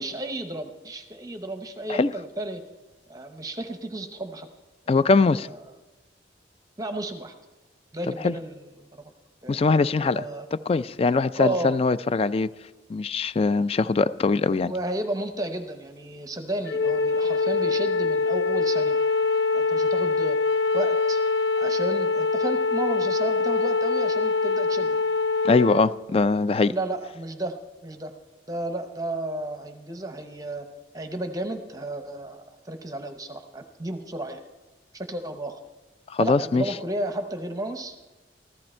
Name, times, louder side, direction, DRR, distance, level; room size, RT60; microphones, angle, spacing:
voice 1, 0.0-2.6 3.1-4.5 4.9-5.0 5.4-5.6 6.8-7.3 7.9-9.1 9.4-10.5 11.4-11.8 14.5-19.0 19.5-20.4 20.7-21.2 21.6-25.0 26.7-27.6 27.8-28.1 28.5-30.7 30.9-34.4 34.9-35.6 36.2-38.0, right 1 dB, 20° right, 6 dB, 0.8 m, -33 dB
voice 2, 4.9-5.5 8.2-8.3 9.5-10.2 10.7-12.5 12.9-14.7 25.4-26.7 36.1-36.6, left 3 dB, 35° left, 16 dB, 0.3 m, -22 dB
Wind instrument woodwind instrument, 16.7-25.8, left 4 dB, 75° left, 0.6 m, -24 dB
14.5 x 13.5 x 4.4 m, 1.2 s
head